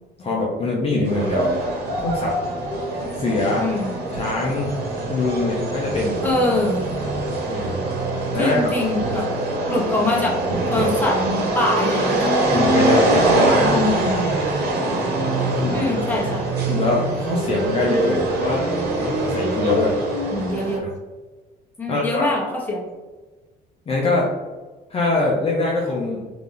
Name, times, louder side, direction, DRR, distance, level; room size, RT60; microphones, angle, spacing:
voice 1, 0.2-1.5 2.0-2.4 3.2-3.7 4.1-4.8 5.1-6.2 7.5-7.9 8.3-8.7 12.5-13.8 15.6-15.8 16.7-18.7 18.9-20.0 21.9-22.3 23.9-24.3 24.9-26.2, left 2 dB, 35° left, -3 dB, 0.9 m, -23 dB
sound 1, 1.1-20.8, right 2 dB, 80° right, 1.2 m, -23 dB
voice 2, 3.6-3.9 6.2-6.8 8.3-9.3 9.7-10.4 10.7-12.3 13.7-14.1 15.7-16.4 20.3-20.8 21.8-22.8, left 2 dB, 10° left, -4 dB, 1.3 m, -24 dB
3.6 x 2.9 x 3.8 m, 1.2 s
cardioid pair, 110°, 17 cm